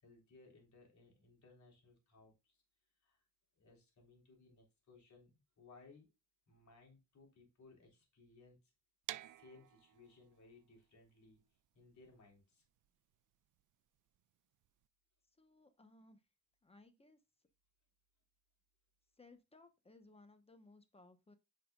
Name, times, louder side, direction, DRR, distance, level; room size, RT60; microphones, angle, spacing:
voice 1, 0.0-2.6 3.0-3.2 3.6-6.1 6.5-8.6 9.1-11.4 11.7-12.6, left 3 dB, 60° left, 0 dB, 3.7 m, -63 dB
sound 1, 9.0-14.9, right 14 dB, 70° right, 0.5 m, -53 dB
voice 2, 15.4-16.2 16.6-17.2 19.2-21.4, left 2 dB, 20° left, 8 dB, 1.1 m, -63 dB
9.2 x 5.7 x 2.4 m, 0.25 s
cardioid pair, 115°, 32 cm